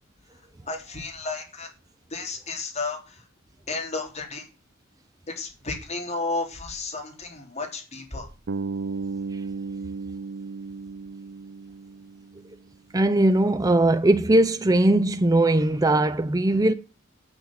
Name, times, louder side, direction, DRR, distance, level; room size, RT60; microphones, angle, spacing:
voice 1, 0.7-1.7 2.1-3.2 3.7-4.5 5.3-8.3, left 3 dB, 35° left, 3.6 m, -32 dB
Bass guitar, 8.5-12.6, right 4 dB, 60° right, 0.5 m, -34 dB
voice 2, 12.9-16.7, right 1 dB, 20° right, 0.6 m, -20 dB
9.2 x 8.8 x 7.2 m
head